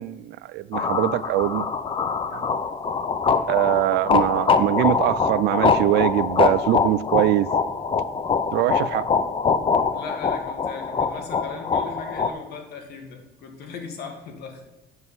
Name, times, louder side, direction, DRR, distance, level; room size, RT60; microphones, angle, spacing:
voice 1, 0.0-1.7 2.3-2.6 3.5-7.5 8.5-9.1, right 15 dB, 80° right, 0.5 m, -23 dB
sound 1, 0.7-12.3, left 5 dB, 30° left, 0.7 m, -23 dB
voice 2, 9.9-14.6, left 5 dB, 70° left, 1.9 m, -37 dB
8.0 x 6.0 x 5.5 m
cardioid pair, 110°, 17 cm